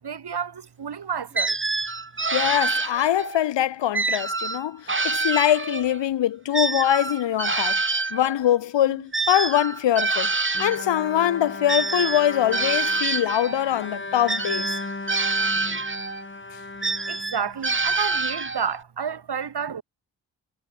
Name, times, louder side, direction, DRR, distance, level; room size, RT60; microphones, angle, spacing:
voice 1, 0.0-1.6 17.1-19.8, right 7 dB, 65° right, 6.0 m, -30 dB
sound 1, 1.4-3.4 3.9-6.0 6.5-10.9 11.7-13.7 14.3-16.3 16.8-18.8, right 3 dB, 30° right, 2.8 m, -26 dB
voice 2, 2.3-10.3 10.6-14.8, left 11 dB, 85° left, 2.8 m, -23 dB
Bowed string instrument, 10.5-17.9, left 2 dB, 25° left, 6.3 m, -36 dB
supercardioid pair, 45°, 43 cm